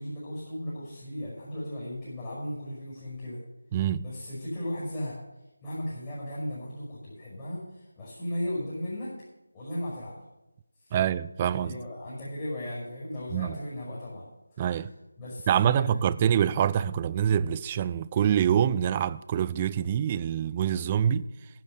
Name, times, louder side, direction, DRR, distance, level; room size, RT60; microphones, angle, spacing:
voice 1, 0.0-3.4 4.0-5.2 5.6-9.1 9.5-10.2 11.4-14.3 15.2-16.3, left 1 dB, 15° left, 5.5 m, -36 dB
voice 2, 3.7-4.1 10.9-11.8 13.3-13.6 14.6-14.9 15.5-21.3, right 9 dB, 20° right, 0.3 m, -25 dB
10.5 x 8.5 x 8.0 m
figure-of-eight pair, 165°, 0 cm